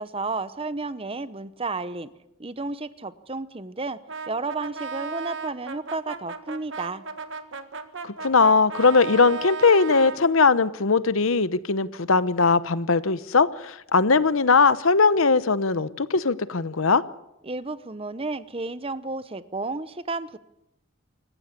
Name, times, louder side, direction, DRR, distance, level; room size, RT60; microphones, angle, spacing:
voice 1, 0.0-2.1 2.4-4.0 4.3-7.0 17.4-20.4, right 3 dB, 25° right, 14 dB, 0.9 m, -32 dB
Brass instrument, 4.1-10.2, right 4 dB, 55° right, 1.7 m, -36 dB
voice 2, 8.0-17.0, left 4 dB, 65° left, 15 dB, 0.9 m, -20 dB
26.5 x 15.5 x 8.3 m, 0.88 s
head